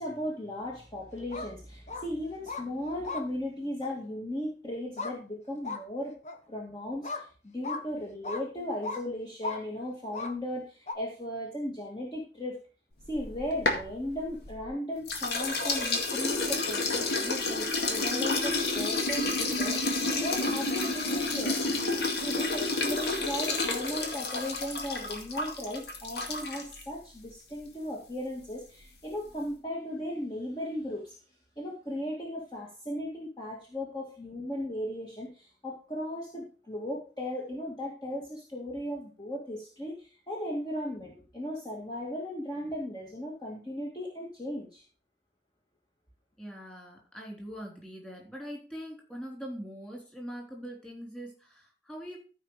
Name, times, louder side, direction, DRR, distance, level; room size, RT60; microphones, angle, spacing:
voice 1, 0.0-6.1 6.5-12.6 13.1-21.5 22.2-31.2 31.6-44.8, left 1 dB, 25° left, -3 dB, 2.0 m, -36 dB
sound 1, 1.2-1.5 1.9-2.0 2.5-2.6 3.0-3.2 3.8-3.9 5.0-5.1 5.6-5.8 6.2-6.4 7.0-7.2 7.6-7.8 8.2-8.4 8.8-9.0 9.4-9.6 10.1-10.3 10.9-11.0, left 3 dB, 40° left, 1.2 m, -36 dB
sound 2, 13.1-14.7 15.1-26.8, left 3 dB, 65° left, 2.1 m, -30 dB
voice 2, 46.4-52.2, equal, 5° left, -1 dB, 3.6 m, -42 dB
14.0 x 5.0 x 4.8 m, 0.38 s
head